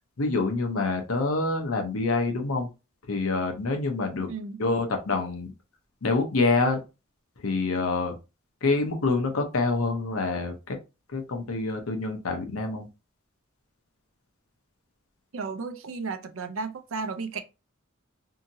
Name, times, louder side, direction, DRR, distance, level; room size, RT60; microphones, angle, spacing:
voice 1, 0.2-2.7 3.1-4.3 4.6-5.5 6.0-6.8 7.4-8.2 8.6-10.8 11.1-12.9, left 3 dB, 90° left, 0.7 m, -26 dB
voice 2, 4.3-4.6 15.3-17.4, right 4 dB, 70° right, 0.5 m, -34 dB
2.8 x 2.7 x 2.6 m
head